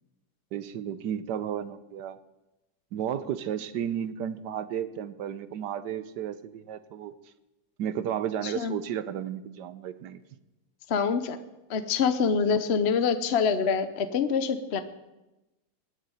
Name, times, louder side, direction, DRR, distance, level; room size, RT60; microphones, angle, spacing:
voice 1, 0.5-2.2 2.9-7.1 7.8-10.2, right 9 dB, 85° right, 13 dB, 1.4 m, -33 dB
voice 2, 8.4-8.8 10.9-11.4 11.7-14.8, left 6 dB, 50° left, 10 dB, 0.9 m, -25 dB
19.5 x 6.7 x 9.1 m, 1.0 s
omnidirectional pair, 1.8 m